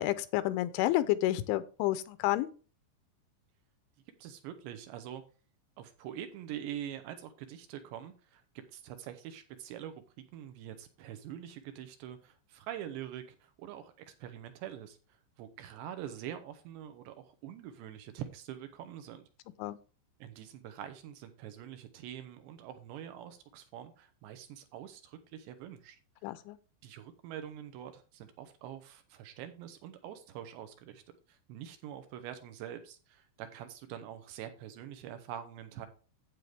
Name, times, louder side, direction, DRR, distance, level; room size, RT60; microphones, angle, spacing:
voice 1, 0.0-2.5 19.6-19.8 26.2-26.6, left 15 dB, 85° left, 14 dB, 2.9 m, -30 dB
voice 2, 4.2-5.2 5.8-8.4 8.7-9.9 10.3-15.0 15.4-19.3 20.2-26.0 26.8-31.0 31.3-35.9, right 10 dB, 80° right, 8 dB, 2.8 m, -45 dB
9.2 x 8.1 x 3.4 m, 0.35 s
omnidirectional pair, 5.5 m